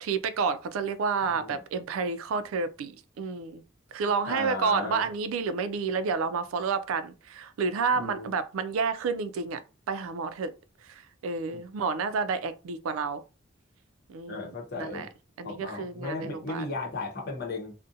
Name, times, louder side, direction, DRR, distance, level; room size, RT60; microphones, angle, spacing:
voice 1, 0.0-3.6 3.9-9.6 9.9-10.5 11.2-13.2 14.1-15.1 15.4-16.6, right 5 dB, 80° right, 0.3 m, -30 dB
voice 2, 1.3-1.6 4.3-5.1 7.9-8.3 14.3-15.1 15.4-17.7, left 3 dB, 50° left, 0.8 m, -36 dB
2.5 x 2.1 x 2.6 m
head